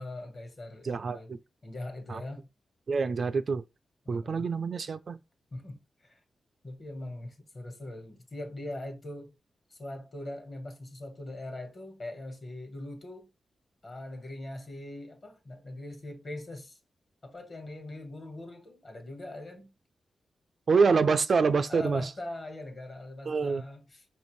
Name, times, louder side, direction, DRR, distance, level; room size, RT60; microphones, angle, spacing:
voice 1, 0.0-1.3 1.6-2.5 4.0-4.5 5.5-6.2 6.6-9.3 9.7-13.3 13.8-16.8 17.2-19.7 21.7-24.1, left 1 dB, 40° left, 1.3 m, -41 dB
voice 2, 0.8-1.4 2.1-2.2 2.9-3.6 4.1-5.2 20.7-22.0 23.3-23.6, right 5 dB, 50° right, 0.3 m, -26 dB
5.3 x 2.6 x 3.0 m
wide cardioid pair, 135°, 0 cm